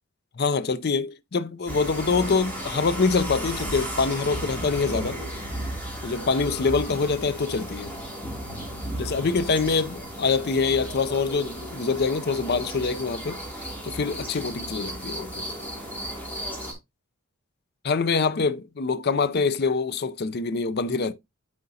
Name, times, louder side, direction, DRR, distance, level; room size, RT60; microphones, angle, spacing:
voice 1, 0.4-5.2 6.0-7.9 9.0-13.4 13.8-15.5 17.8-21.1, left 4 dB, 50° left, 0.5 m, -25 dB
sound 1, 1.7-16.7, equal, 10° left, 2.8 m, -35 dB
9.4 x 5.0 x 2.7 m
head